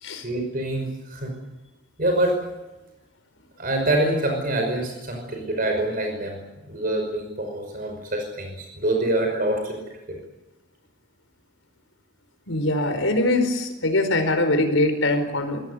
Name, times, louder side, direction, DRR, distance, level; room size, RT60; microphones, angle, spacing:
voice 1, 0.2-1.3 2.0-2.4 3.6-6.4 6.7-9.8, right 1 dB, 45° right, 3 dB, 5.6 m, -25 dB
voice 2, 12.5-15.6, left 2 dB, 85° left, 8 dB, 4.8 m, -22 dB
26.0 x 18.5 x 8.2 m, 1.0 s
head